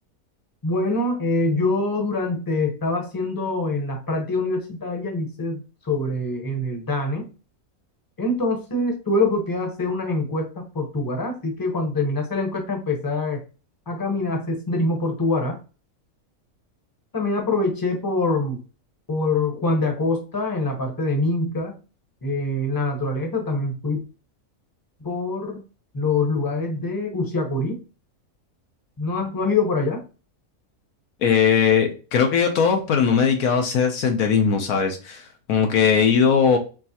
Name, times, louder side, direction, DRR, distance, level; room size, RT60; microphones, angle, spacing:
voice 1, 0.6-7.3 8.2-13.4 13.9-15.6 17.1-18.6 19.1-21.7 22.2-24.0 25.0-25.6 25.9-27.8 29.0-30.0, left 2 dB, 20° left, 3 dB, 0.8 m, -24 dB
voice 2, 31.2-36.6, left 6 dB, 80° left, 4 dB, 1.1 m, -19 dB
4.5 x 3.1 x 2.8 m, 0.34 s
omnidirectional pair, 1.5 m